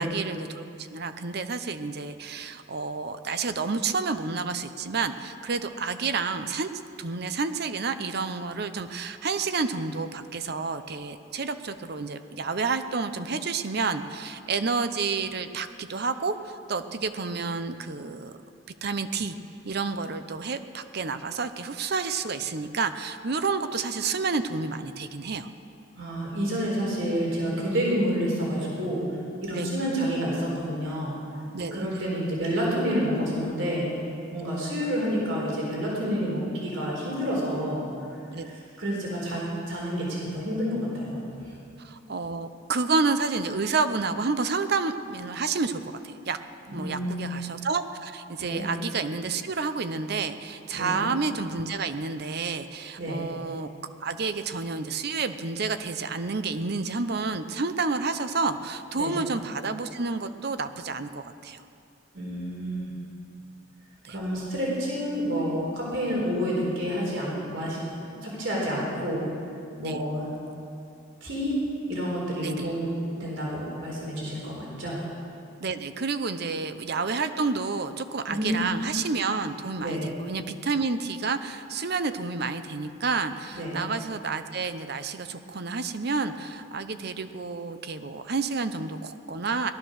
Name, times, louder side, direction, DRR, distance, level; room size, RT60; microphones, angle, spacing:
voice 1, 0.0-6.7 7.0-18.4 18.8-19.3 19.6-25.5 29.5-29.7 31.5-31.9 34.4-34.5 38.3-38.5 41.8-46.4 46.7-53.7 54.0-61.6 64.0-64.2 69.8-70.0 72.4-72.7 75.6-89.7, right 4 dB, 50° right, 10 dB, 0.7 m, -30 dB
voice 2, 26.0-29.1 29.4-31.2 31.7-33.9 34.3-37.8 38.1-41.5 46.7-47.3 48.4-48.7 50.7-51.0 53.0-53.3 59.0-59.2 62.1-62.9 64.1-69.3 69.8-70.3 71.2-71.6 71.9-72.9 73.2-75.0 78.3-78.6 79.8-80.1 83.5-83.8, equal, 70° right, -4 dB, 4.1 m, -29 dB
18.5 x 12.5 x 6.4 m, 2.6 s
head